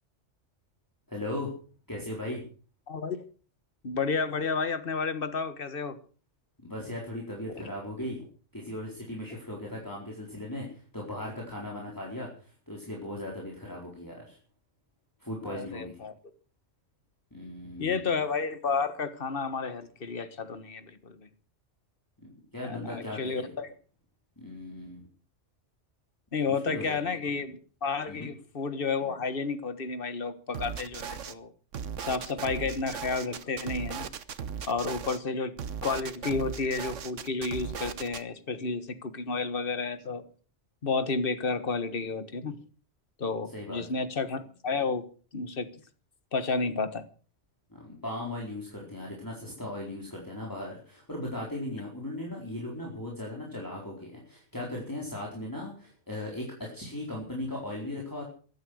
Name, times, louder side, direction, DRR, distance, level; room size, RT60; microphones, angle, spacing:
voice 1, 1.1-1.5 1.9-2.4 6.6-8.2 8.5-12.3 12.7-14.4 15.2-16.0 17.3-18.0 22.2-23.5 24.4-25.0 26.5-27.0 28.1-28.3 43.5-43.8 47.7-58.2, left 1 dB, 15° left, -3 dB, 4.2 m, -38 dB
voice 2, 2.9-3.2 3.8-6.0 7.5-7.6 15.4-16.1 17.8-21.2 22.6-23.7 26.3-31.5 32.0-34.1 34.7-35.5 35.8-40.2 40.8-42.6 43.2-45.0 45.3-45.7 46.3-47.0, left 4 dB, 50° left, 11 dB, 1.7 m, -31 dB
sound 1, 30.5-31.3 31.7-35.2 35.6-38.2, right 7 dB, 80° right, 1.3 m, -37 dB
16.0 x 12.0 x 6.4 m, 0.41 s
omnidirectional pair, 1.3 m